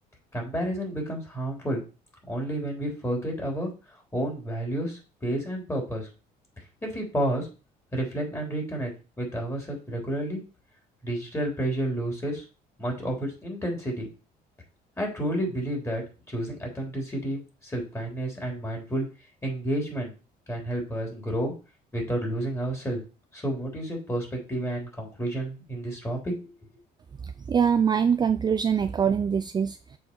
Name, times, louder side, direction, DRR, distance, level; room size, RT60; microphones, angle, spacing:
voice 1, 0.3-1.8 2.3-3.7 4.1-6.1 6.8-7.5 7.9-8.9 9.2-10.4 11.0-12.4 12.8-14.1 15.0-19.1 19.4-20.1 20.5-21.5 21.9-23.0 23.3-26.4, right 1 dB, 15° left, 0 dB, 3.3 m, -30 dB
voice 2, 27.2-30.0, right 7 dB, 25° right, 10 dB, 0.4 m, -24 dB
7.1 x 4.4 x 4.6 m, 0.33 s
cardioid pair, 110°, 17 cm